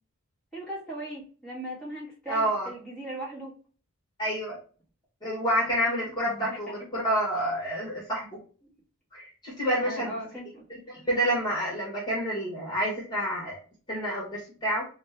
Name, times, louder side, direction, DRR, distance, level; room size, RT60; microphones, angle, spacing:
voice 1, 0.5-3.5 6.2-6.8 9.8-10.7 10.9-11.1, right 1 dB, 5° left, -8 dB, 1.5 m, -38 dB
voice 2, 2.3-2.7 4.2-4.6 5.2-8.4 9.1-10.1 10.9-13.6 13.9-14.8, equal, 20° left, -5 dB, 1.3 m, -28 dB
3.2 x 2.2 x 3.4 m, 0.39 s
head